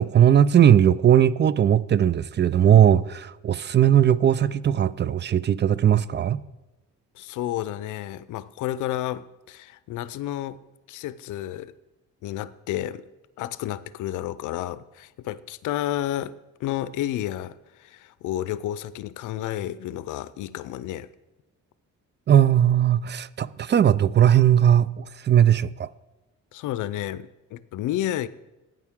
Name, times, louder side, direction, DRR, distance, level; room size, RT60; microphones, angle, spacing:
voice 1, 0.0-6.4 22.3-25.9, right 10 dB, 35° right, 0.4 m, -18 dB
voice 2, 7.2-10.6 10.9-11.7 12.2-13.0 13.4-21.1 26.5-28.3, left 13 dB, 80° left, 0.5 m, -31 dB
15.5 x 9.5 x 3.6 m
cardioid pair, 90°, 30 cm